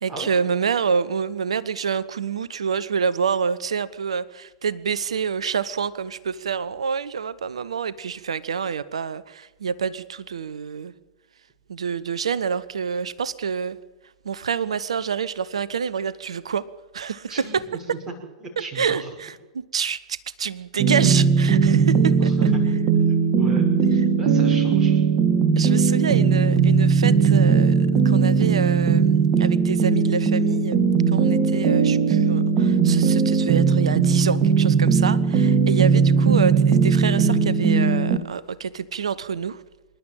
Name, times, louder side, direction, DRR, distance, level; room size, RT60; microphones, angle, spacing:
voice 1, 0.0-10.9 11.7-13.8 14.2-16.7 16.9-17.6 18.7-22.3 25.6-30.8 31.1-39.6, right 6 dB, 70° right, 18 dB, 0.9 m, -27 dB
voice 2, 17.3-17.6 18.1-18.2 18.4-19.1 22.2-22.6 23.4-25.0, right 3 dB, 15° right, 0 dB, 6.2 m, -36 dB
sound 1, 20.8-38.2, right 5 dB, 35° right, 2.4 m, -19 dB
26.0 x 11.5 x 9.0 m, 1.1 s
figure-of-eight pair, 95°, 3 cm